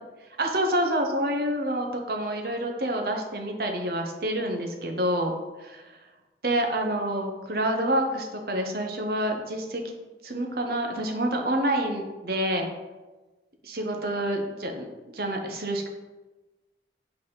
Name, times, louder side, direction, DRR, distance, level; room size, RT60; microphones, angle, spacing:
voice 1, 0.4-5.3 5.6-6.0 6.4-9.9 10.2-12.7 13.6-15.9, right 1 dB, 55° right, 3 dB, 0.9 m, -28 dB
7.7 x 4.1 x 3.9 m, 1.2 s
head